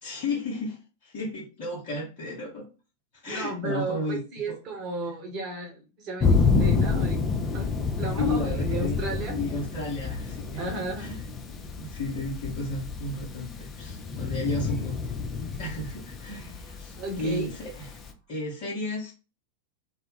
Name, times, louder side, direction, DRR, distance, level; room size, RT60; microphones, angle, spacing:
voice 1, 0.0-2.7 3.1-4.2 4.5-4.6 8.2-9.0 9.3-11.3 11.8-15.2 15.6-19.1, left 2 dB, 45° left, -5 dB, 0.9 m, -33 dB
voice 2, 3.3-7.2 7.5-7.7 8.0-9.4 10.6-11.1 17.0-17.5, right 2 dB, 35° right, 2 dB, 0.9 m, -33 dB
Thunder, 6.2-18.1, left 4 dB, 25° left, 0.5 m, -29 dB
2.4 x 2.1 x 3.2 m, 0.32 s
figure-of-eight pair, 90°, 0 cm